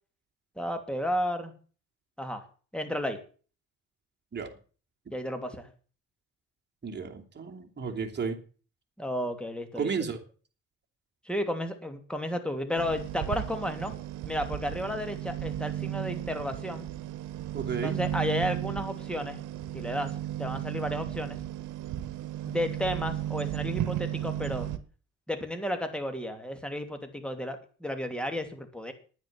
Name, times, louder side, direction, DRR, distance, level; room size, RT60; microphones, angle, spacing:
voice 1, 0.6-1.5 2.2-2.4 2.7-3.2 5.1-5.7 9.0-9.9 11.2-14.0 14.2-16.9 17.8-19.4 19.7-21.4 22.4-24.7 25.3-28.9, equal, 5° left, 7 dB, 2.8 m, -33 dB
voice 2, 6.8-8.4 9.8-10.2 17.5-18.0, right 5 dB, 35° right, 2 dB, 2.9 m, -33 dB
sound 1, 12.8-24.8, right 13 dB, 80° right, 1.2 m, -34 dB
10.5 x 9.6 x 7.5 m, 0.39 s
cardioid pair, 90°, 30 cm